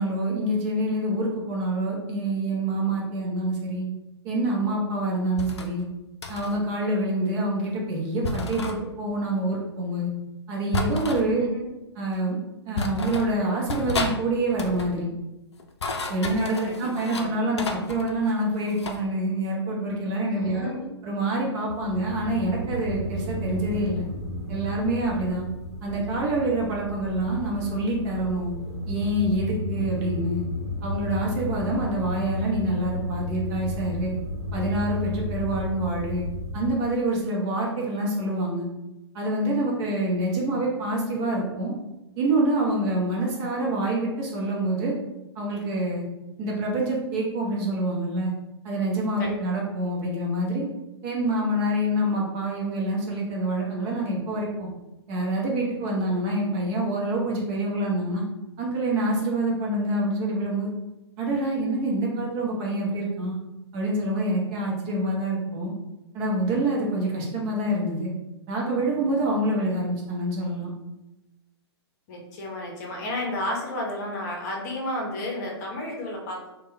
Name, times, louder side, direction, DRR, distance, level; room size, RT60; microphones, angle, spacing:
voice 1, 0.0-3.9 4.2-5.8 6.3-10.1 10.5-11.4 12.0-12.4 12.7-15.1 16.1-20.7 21.0-24.0 24.5-25.5 25.8-28.5 28.9-30.4 30.8-34.1 34.5-36.2 36.5-38.7 39.1-41.7 42.2-44.9 45.4-46.0 46.4-48.3 48.6-50.7 51.0-54.7 55.1-58.2 58.6-60.7 61.2-63.4 63.7-65.7 66.1-68.1 68.5-70.7, right 1 dB, 30° right, -3 dB, 0.8 m, -26 dB
sound 1, 5.4-5.7 6.2-6.6 8.2-8.8 10.7-11.3 12.1-12.2 12.8-13.3 13.7-14.2 14.5-14.9 15.6-17.3 17.6-19.0, left 3 dB, 75° left, 0.4 m, -31 dB
voice 2, 11.2-11.7 16.6-17.4 20.3-20.9 49.2-49.3 72.1-76.5, left 1 dB, 40° left, -1 dB, 0.8 m, -32 dB
sound 2, 21.7-36.7, left 1 dB, 80° right, 0.9 m, -33 dB
3.0 x 2.2 x 3.1 m, 0.98 s
figure-of-eight pair, 120°, 14 cm